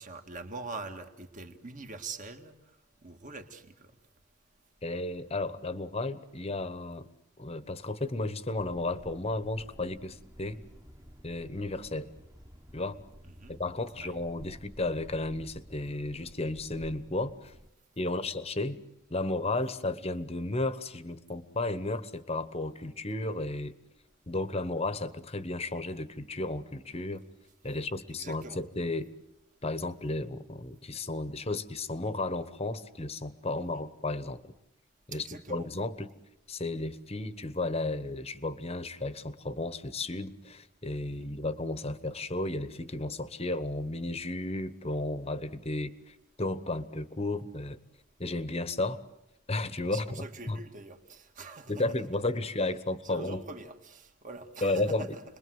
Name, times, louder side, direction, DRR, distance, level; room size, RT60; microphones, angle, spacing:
voice 1, 0.0-2.6 3.0-3.9 13.2-13.6 14.0-14.2 18.2-18.3 28.1-28.6 33.7-33.8 35.1-35.7 41.1-41.3 49.8-52.1 53.0-55.2, right 3 dB, 35° right, 2.0 m, -44 dB
voice 2, 4.8-7.1 7.4-10.6 11.2-12.1 12.7-13.0 13.5-17.5 18.0-18.8 19.1-23.8 24.3-27.2 27.6-29.1 29.6-34.5 35.1-36.1 36.5-47.8 48.2-49.0 49.5-50.2 50.5-50.6 51.7-53.4 54.6-55.2, left 2 dB, 30° left, 1.2 m, -33 dB
sound 1, 8.6-17.7, equal, 15° right, 1.4 m, -52 dB
30.0 x 22.0 x 8.0 m
head